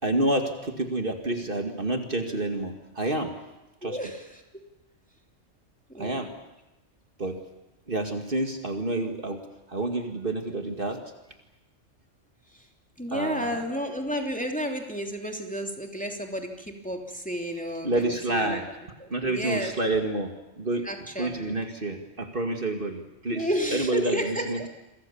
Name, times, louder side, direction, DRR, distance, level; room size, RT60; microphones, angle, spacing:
voice 1, 0.0-3.3 3.8-4.0 6.0-6.3 7.2-7.3 7.9-9.4 9.7-11.0 13.1-13.5 17.8-18.7 19.1-20.9 21.2-24.7, right 2 dB, 45° right, 5 dB, 2.5 m, -28 dB
voice 2, 3.8-4.4 5.9-6.3 12.5-12.7 13.0-18.6 19.0-19.7 20.8-21.6 23.3-24.7, equal, 5° left, 2 dB, 3.1 m, -32 dB
28.0 x 24.5 x 7.2 m, 0.99 s
omnidirectional pair, 1.3 m